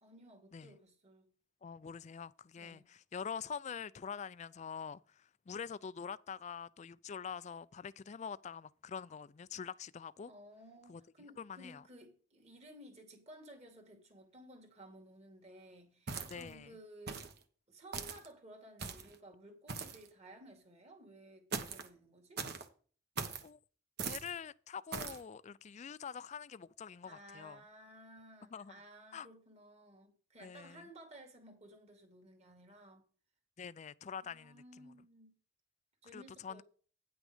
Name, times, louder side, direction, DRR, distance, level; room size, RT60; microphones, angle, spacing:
voice 1, 0.0-1.2 2.6-2.8 10.3-17.3 17.7-22.5 27.0-33.0 34.2-35.3 36.0-36.6, right 1 dB, 35° right, 2.2 m, -56 dB
voice 2, 1.6-10.3 10.9-11.0 11.4-11.8 16.3-16.7 23.4-23.6 24.0-27.6 28.5-28.7 29.1-29.3 30.4-30.8 33.6-34.9 36.1-36.6, left 6 dB, 35° left, 0.3 m, -45 dB
sound 1, 16.1-16.5 17.1-17.4 17.9-18.3 18.8-19.1 19.7-20.1 21.5-21.9 22.4-22.7 23.2-23.5 24.0-24.3 24.9-25.2, right 5 dB, 55° right, 1.1 m, -40 dB
9.6 x 6.2 x 5.0 m
head